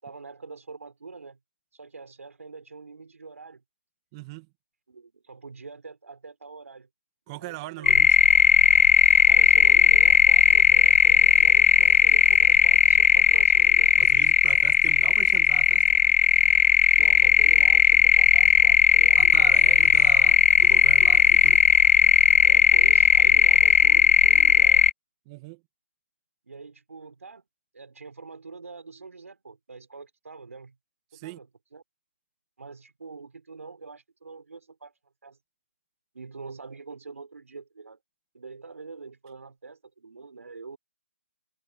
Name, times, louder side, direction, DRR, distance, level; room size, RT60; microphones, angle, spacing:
voice 1, 0.0-1.4 1.7-3.6 4.9-6.9 7.3-8.0 9.3-13.9 17.0-20.0 22.4-24.8 26.4-27.5 27.7-30.8 31.1-31.8 32.6-34.9 35.2-35.4 36.1-38.0 38.3-40.8, right 4 dB, 80° right, 4.7 m, -45 dB
voice 2, 4.1-4.5 7.3-8.2 14.0-15.8 19.1-21.6 25.3-25.6 31.1-31.4, right 23 dB, 20° right, 2.0 m, -40 dB
sound 1, 7.9-24.9, left 6 dB, 60° left, 0.4 m, -17 dB
hypercardioid pair, 165°, 8 cm